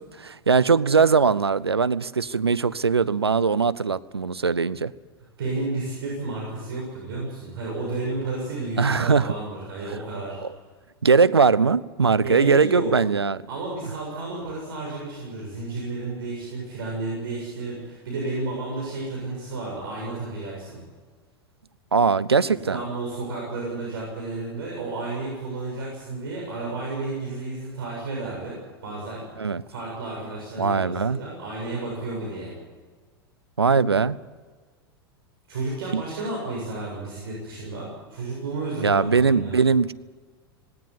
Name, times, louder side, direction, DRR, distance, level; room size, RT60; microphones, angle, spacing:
voice 1, 0.0-4.9 8.8-9.3 10.4-10.5 11.0-13.4 21.9-22.8 29.4-29.6 30.6-31.2 33.6-34.2 35.9-36.0 38.8-39.9, right 5 dB, 90° right, 16 dB, 0.6 m, -20 dB
voice 2, 5.4-10.4 12.2-12.9 13.5-20.8 22.4-28.6 28.8-29.2 29.7-32.5 35.5-39.6, right 2 dB, 65° right, -3 dB, 7.1 m, -32 dB
18.0 x 17.5 x 9.8 m, 1.5 s
figure-of-eight pair, 90°, 13 cm